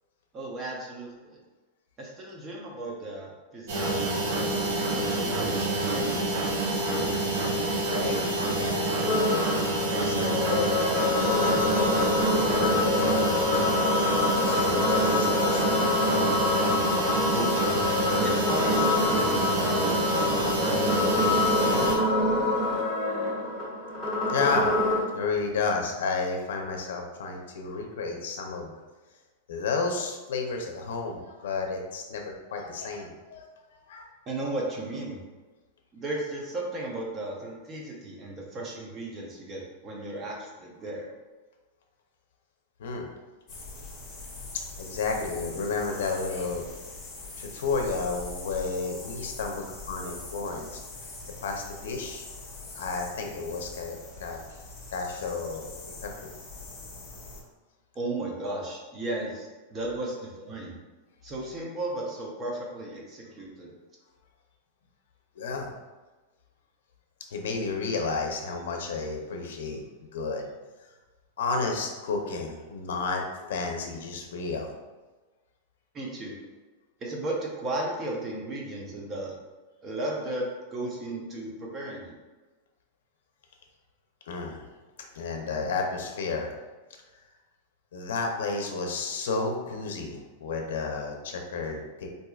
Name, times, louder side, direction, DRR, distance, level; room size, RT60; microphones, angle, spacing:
voice 1, 0.3-1.4 2.0-6.2 17.3-17.9 18.2-21.9 34.3-35.2 35.9-41.1 58.0-60.7 61.2-63.7 75.9-76.4 77.0-79.4 79.8-82.2, right 2 dB, 20° right, -2 dB, 0.6 m, -35 dB
sound 1, 3.7-21.9, right 2 dB, 55° right, 0.7 m, -27 dB
voice 2, 7.9-8.2 8.6-10.7 11.2-16.2 24.3-24.7 25.0-28.8 29.5-33.6 33.9-34.1 42.8-43.1 44.8-46.7 47.4-50.8 51.4-52.2 52.7-54.4 54.9-55.7 56.0-56.3 65.4-65.7 67.3-69.8 70.1-70.5 71.4-74.7 84.3-84.7 85.1-86.5 87.9-92.1, left 4 dB, 80° left, 3 dB, 0.6 m, -32 dB
sound 2, 9.0-25.0, left 2 dB, ahead, 1.3 m, -26 dB
sound 3, 43.5-57.4, left 3 dB, 15° left, 1.2 m, -43 dB
4.5 x 2.6 x 2.3 m, 1.2 s
supercardioid pair, 165°, 0 cm